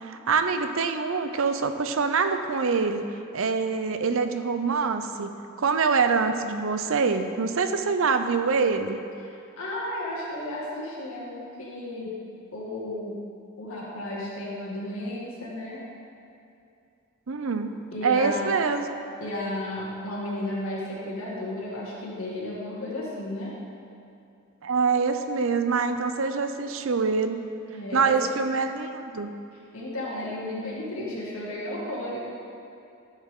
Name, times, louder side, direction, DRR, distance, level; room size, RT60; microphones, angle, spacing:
voice 1, 0.0-3.1 3.3-5.3 5.6-9.0 17.3-17.8 18.0-18.9 24.6-27.4 27.9-29.3, right 5 dB, 65° right, 8 dB, 0.6 m, -25 dB
voice 2, 9.2-12.2 12.5-13.2 13.6-15.8 17.9-18.5 19.2-23.5 27.7-28.2 29.7-32.2, left 1 dB, 75° left, -7 dB, 2.1 m, -33 dB
13.0 x 7.3 x 3.8 m, 2.6 s
head